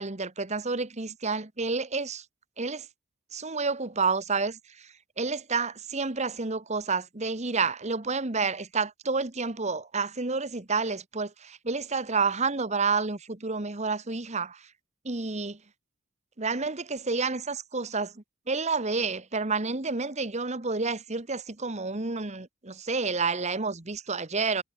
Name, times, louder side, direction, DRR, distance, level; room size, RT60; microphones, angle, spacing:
voice 1, 0.0-2.2 2.6-2.9 3.3-14.7 15.0-15.6 16.4-24.6, right 4 dB, 30° right, 1.4 m, -30 dB
head